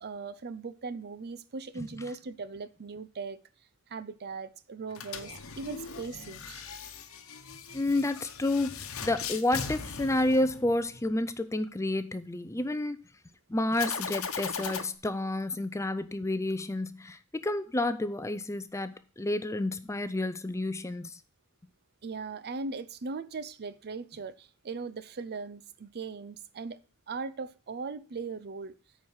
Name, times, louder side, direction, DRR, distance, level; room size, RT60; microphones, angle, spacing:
voice 1, 0.0-3.4 3.9-6.6 22.0-26.8 27.1-28.7, right 4 dB, 50° right, 0.6 m, -39 dB
sound 1, 4.9-11.1 13.7-14.8, left 6 dB, 70° left, 1.1 m, -39 dB
voice 2, 7.7-13.0 13.5-21.2, left 2 dB, 15° left, 0.5 m, -30 dB
9.1 x 4.8 x 5.5 m
head